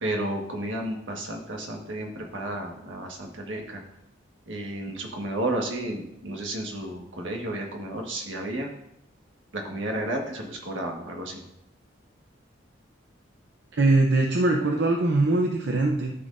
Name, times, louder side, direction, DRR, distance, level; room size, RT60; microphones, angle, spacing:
voice 1, 0.0-3.8 4.5-8.7 9.5-11.4, right 1 dB, 80° right, 1 dB, 1.5 m, -32 dB
voice 2, 13.8-16.1, right 2 dB, 65° right, 1 dB, 0.7 m, -22 dB
12.5 x 6.2 x 2.6 m, 0.80 s
head